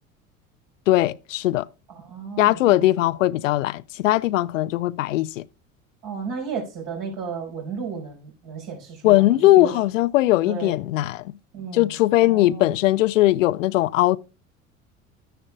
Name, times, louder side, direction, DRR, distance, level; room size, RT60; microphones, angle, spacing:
voice 1, 0.9-1.7 2.4-5.4 9.0-11.2 11.7-14.2, left 16 dB, 65° left, 0.5 m, -19 dB
voice 2, 1.9-2.9 6.0-9.8 10.5-10.8 11.5-11.9 12.2-12.8, right 6 dB, 50° right, 5.5 m, -34 dB
12.5 x 10.0 x 2.2 m
figure-of-eight pair, 65°, 41 cm